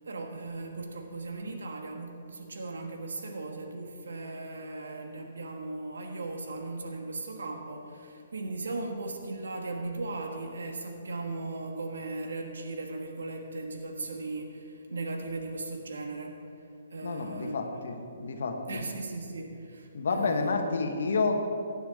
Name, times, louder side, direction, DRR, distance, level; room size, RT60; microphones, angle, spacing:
voice 1, 0.0-16.4 16.9-17.8 18.7-20.5, right 2 dB, 85° right, 3 dB, 1.4 m, -37 dB
voice 2, 17.0-17.9 18.2-18.5 19.9-21.6, left 3 dB, 75° left, 4 dB, 1.4 m, -29 dB
15.5 x 10.0 x 3.7 m, 2.5 s
hypercardioid pair, 155°, 0 cm